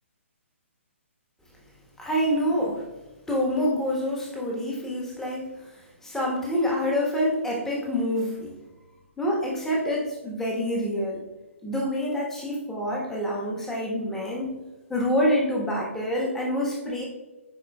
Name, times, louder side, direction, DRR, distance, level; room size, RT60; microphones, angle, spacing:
voice 1, 2.0-2.8 3.3-8.6 9.2-11.2 11.6-17.0, equal, 5° left, -3 dB, 1.3 m, -27 dB
9.6 x 4.4 x 2.3 m, 1.1 s
figure-of-eight pair, 135°, 7 cm